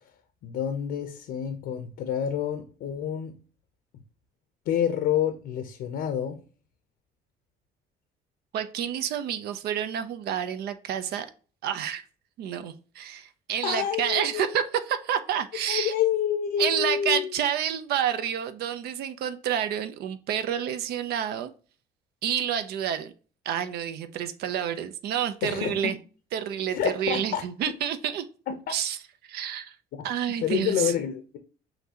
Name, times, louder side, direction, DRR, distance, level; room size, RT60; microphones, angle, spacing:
voice 1, 0.4-3.4 4.7-6.4 13.6-14.6 15.7-17.3 25.4-25.9 26.7-27.4 28.5-28.7 29.9-30.0 30.4-31.4, left 9 dB, 75° left, 0.7 m, -28 dB
voice 2, 8.5-11.3 11.6-12.0 12.4-15.9 16.6-21.5 22.2-23.1 23.5-26.0 26.3-28.2 28.7-29.0 29.3-29.7 30.0-30.9, right 9 dB, 70° right, 0.5 m, -29 dB
5.9 x 2.7 x 2.8 m
cardioid pair, 110°, 17 cm